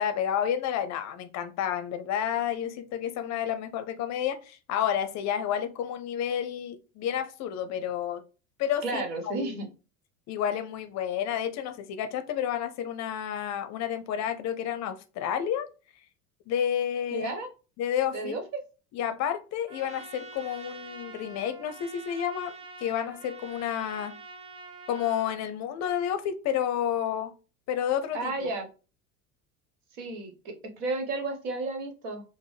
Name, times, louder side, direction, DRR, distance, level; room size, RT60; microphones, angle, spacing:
voice 1, 0.0-8.2 8.6-9.5 10.3-15.7 16.5-17.3 17.8-18.4 18.9-24.1 24.9-27.3 27.7-28.5, left 9 dB, 40° left, 0.5 m, -30 dB
voice 2, 8.8-9.7 17.1-17.5 18.1-18.6 28.1-28.7 29.9-32.2, right 3 dB, 65° right, 1.2 m, -33 dB
Trumpet, 19.7-25.5, right 3 dB, 35° right, 0.9 m, -46 dB
5.1 x 2.1 x 3.2 m
hypercardioid pair, 75°, 42 cm